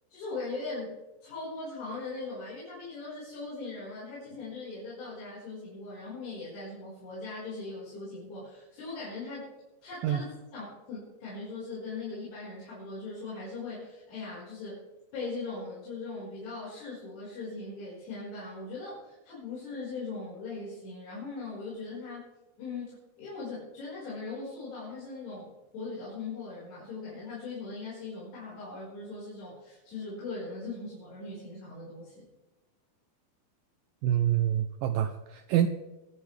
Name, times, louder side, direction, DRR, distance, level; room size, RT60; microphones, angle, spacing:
voice 1, 0.1-9.5 9.8-14.8 15.1-22.2 22.6-32.3, left 3 dB, 75° left, -8 dB, 7.0 m, -40 dB
voice 2, 34.0-35.7, right 11 dB, 80° right, 8 dB, 2.0 m, -26 dB
25.0 x 9.5 x 3.3 m, 1.1 s
omnidirectional pair, 4.8 m